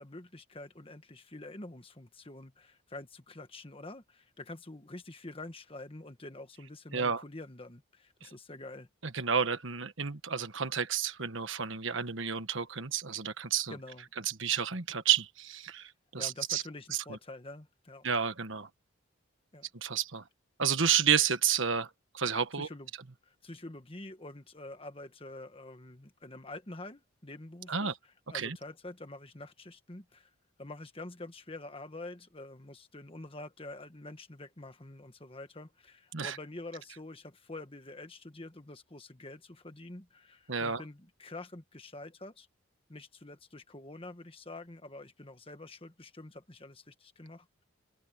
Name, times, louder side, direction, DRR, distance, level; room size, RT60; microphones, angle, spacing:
voice 1, 0.0-8.9 13.7-14.1 16.2-18.1 19.5-19.7 22.5-22.9 23.2-30.3 30.6-42.5 42.9-47.6, left 2 dB, 25° left, 1.5 m, -47 dB
voice 2, 9.0-13.7 14.2-16.6 17.1-17.2 18.0-18.7 19.8-20.2 20.6-21.9 22.1-22.7 27.7-27.9 28.3-28.6 36.1-36.4 40.5-40.8, right 7 dB, 65° right, 1.4 m, -30 dB
open air
head